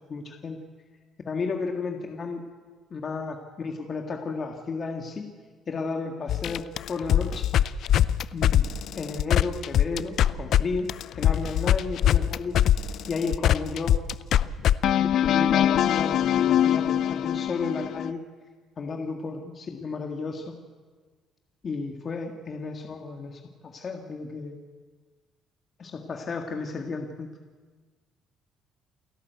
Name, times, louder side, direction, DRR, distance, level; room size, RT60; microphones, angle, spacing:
voice 1, 0.1-0.6 1.2-2.4 2.9-5.3 5.7-7.5 8.3-10.9 11.1-12.6 13.1-14.0 15.0-18.2 18.8-20.5 21.6-24.6 25.8-27.3, left 4 dB, 35° left, 3 dB, 1.8 m, -33 dB
sound 1, 6.3-10.6 10.9-18.1, left 11 dB, 60° left, 0.5 m, -22 dB
29.0 x 11.5 x 8.2 m, 1.4 s
cardioid pair, 125°, 0 cm